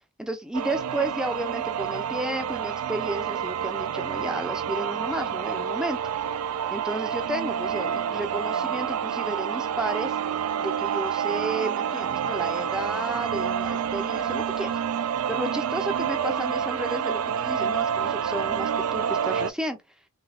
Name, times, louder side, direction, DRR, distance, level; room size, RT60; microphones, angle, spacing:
voice 1, 0.2-6.3 6.7-10.2 10.6-14.8 15.3-19.8, right 1 dB, 5° right, 0.5 m, -32 dB
sound 1, 0.5-19.5, right 8 dB, 75° right, 0.3 m, -28 dB
3.4 x 3.3 x 2.3 m
head